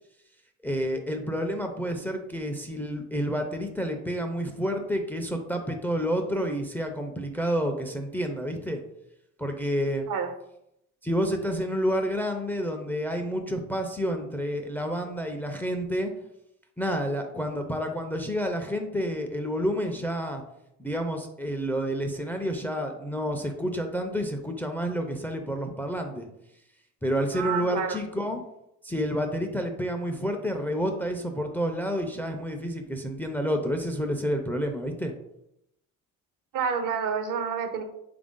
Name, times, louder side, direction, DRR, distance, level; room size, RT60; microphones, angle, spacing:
voice 1, 0.6-8.8 9.4-10.1 11.0-16.1 16.8-20.4 20.8-26.3 27.0-28.4 28.8-35.1, equal, 5° left, 5 dB, 0.4 m, -29 dB
voice 2, 27.3-28.0 36.5-37.8, right 6 dB, 65° right, 7 dB, 0.6 m, -29 dB
3.4 x 2.6 x 3.6 m, 0.81 s
supercardioid pair, 80°, 34 cm